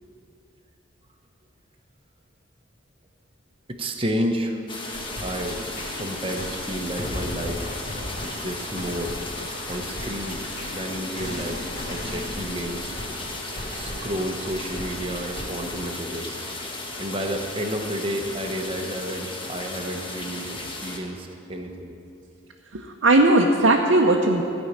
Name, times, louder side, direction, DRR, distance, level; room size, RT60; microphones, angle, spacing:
voice 1, 3.7-4.6 5.2-7.7 8.2-9.3 9.7-10.5 10.7-11.6 11.9-13.0 13.7-16.4 17.0-21.9, equal, 30° right, 3 dB, 0.9 m, -31 dB
sound 1, 4.7-21.0, left 2 dB, 25° left, 1.1 m, -35 dB
sound 2, 4.9-15.9, left 1 dB, 45° left, 3.4 m, -37 dB
voice 2, 22.7-24.4, right 2 dB, 75° right, 0 dB, 0.8 m, -18 dB
14.5 x 5.4 x 8.6 m, 2.7 s
head